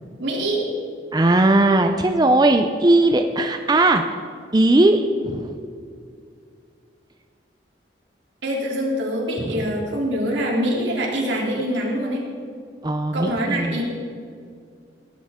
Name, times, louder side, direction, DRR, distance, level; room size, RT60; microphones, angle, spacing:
voice 1, 0.2-0.7 8.4-12.2 13.1-13.8, equal, 80° right, -2 dB, 3.1 m, -24 dB
voice 2, 1.1-4.0 4.5-5.6 9.4-9.6 12.8-13.8, right 2 dB, 20° right, 6 dB, 0.5 m, -18 dB
19.0 x 11.5 x 3.7 m, 2.3 s
head